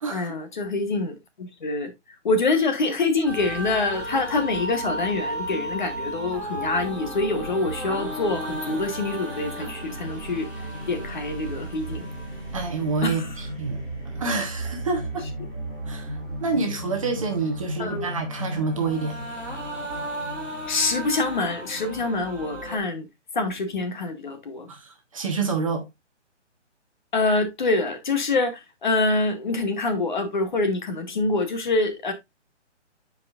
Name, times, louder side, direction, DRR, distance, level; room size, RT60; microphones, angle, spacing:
voice 1, 0.1-1.9 2.2-10.5 10.9-12.1 13.0-13.3 17.8-18.1 20.7-23.1 23.3-24.7 27.1-32.1, left 3 dB, 40° left, 1.4 m, -25 dB
sound 1, 3.2-22.8, equal, 5° left, 1.7 m, -34 dB
voice 2, 12.5-15.3 15.9-19.2 24.7-25.9, right 4 dB, 30° right, 1.1 m, -28 dB
10.5 x 4.9 x 2.4 m
hypercardioid pair, 175°, 36 cm